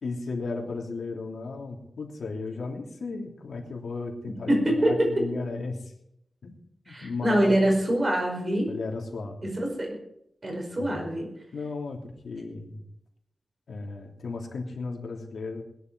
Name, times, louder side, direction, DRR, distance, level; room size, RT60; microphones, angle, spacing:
voice 1, 0.0-5.9 6.4-6.5 6.9-7.7 8.7-9.5 10.8-11.1 11.5-12.8 13.7-15.6, left 3 dB, 75° left, 1 dB, 3.2 m, -35 dB
voice 2, 4.5-5.1 6.9-8.7 9.4-10.0 10.4-11.3, right 1 dB, 30° right, 1 dB, 5.0 m, -24 dB
20.5 x 11.0 x 4.7 m, 0.77 s
wide cardioid pair, 165°, 0 cm